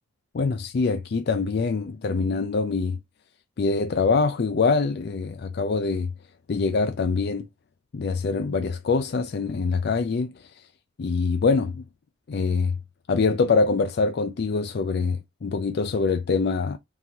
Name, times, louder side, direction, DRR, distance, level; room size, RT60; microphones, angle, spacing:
voice 1, 0.3-3.0 3.6-6.1 6.5-7.4 7.9-10.3 11.0-11.8 12.3-12.8 13.1-16.8, left 4 dB, 50° left, 0.4 m, -24 dB
3.9 x 2.9 x 4.6 m
head